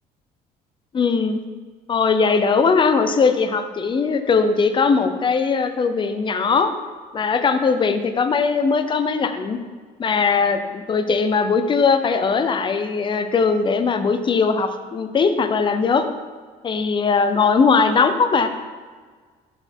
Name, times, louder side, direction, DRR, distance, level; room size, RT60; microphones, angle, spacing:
voice 1, 0.9-1.4 1.9-6.7 7.1-9.6 10.0-16.1 16.6-18.5, left 5 dB, 30° left, 9 dB, 0.5 m, -19 dB
6.6 x 4.4 x 4.4 m, 1.5 s
cardioid pair, 110°, 17 cm